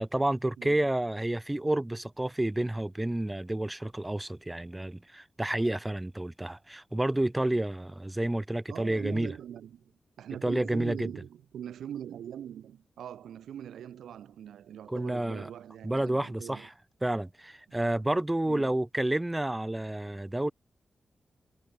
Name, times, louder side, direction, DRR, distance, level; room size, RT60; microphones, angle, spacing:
voice 1, 0.0-9.3 10.4-11.1 14.9-15.5 15.8-16.7 17.0-20.5, right 1 dB, 15° right, 0.3 m, -30 dB
voice 2, 8.7-9.9 10.2-16.7 17.7-18.0 18.4-18.7, right 10 dB, 90° right, 1.0 m, -42 dB
cardioid pair, 45°, 0 cm